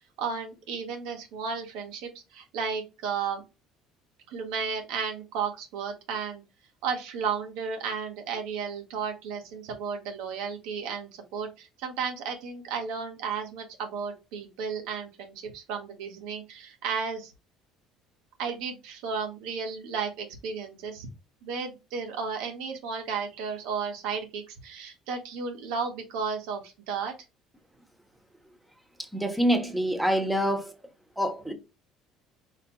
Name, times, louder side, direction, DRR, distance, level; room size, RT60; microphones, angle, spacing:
voice 1, 0.2-3.4 4.3-6.4 6.8-17.3 18.4-21.1 21.4-27.1, right 6 dB, 85° right, 1.7 m, -33 dB
voice 2, 29.1-30.7 31.2-31.5, equal, 5° right, 1.0 m, -26 dB
5.0 x 4.2 x 2.3 m
cardioid pair, 150°, 0 cm